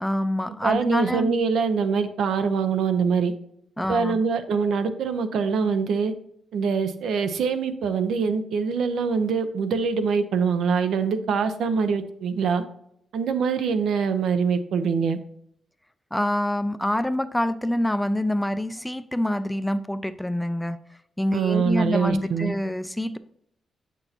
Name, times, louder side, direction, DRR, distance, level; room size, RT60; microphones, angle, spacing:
voice 1, 0.0-1.4 3.8-4.2 16.1-20.8 21.2-23.2, left 1 dB, 5° left, 12 dB, 0.3 m, -26 dB
voice 2, 0.6-3.3 3.9-6.1 6.5-12.6 13.1-15.2 21.3-22.5, right 5 dB, 80° right, 10 dB, 0.6 m, -24 dB
7.8 x 6.1 x 2.8 m, 0.72 s
wide cardioid pair, 150°, 0 cm